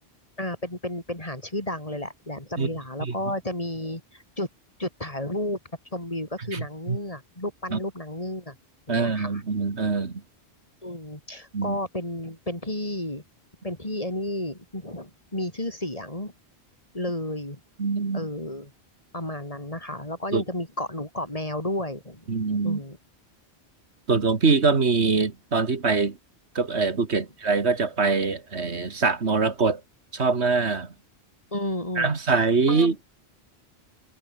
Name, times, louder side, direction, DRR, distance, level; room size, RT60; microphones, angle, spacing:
voice 1, 0.4-4.5 4.8-5.6 5.9-8.6 8.9-9.4 10.8-13.2 13.6-16.3 16.9-17.6 18.1-18.7 19.1-22.3 22.6-23.0 27.1-27.3 31.5-32.4 32.7-33.0, left 1 dB, 30° left, 4.5 m, -32 dB
voice 2, 8.9-10.2 11.5-11.8 17.8-18.3 20.3-20.4 22.3-22.8 24.1-26.2 26.6-29.8 30.1-30.9 32.0-33.0, right 4 dB, 75° right, 2.3 m, -23 dB
omnidirectional pair, 1.1 m